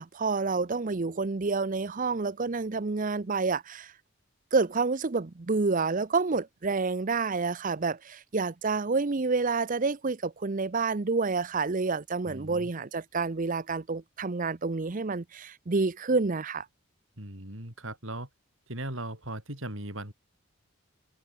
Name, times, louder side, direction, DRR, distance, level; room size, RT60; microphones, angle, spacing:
voice 1, 0.0-3.9 4.5-16.7, right 4 dB, 40° right, 0.6 m, -28 dB
voice 2, 12.2-12.7 17.2-18.3 18.7-20.1, right 1 dB, 60° right, 7.7 m, -38 dB
head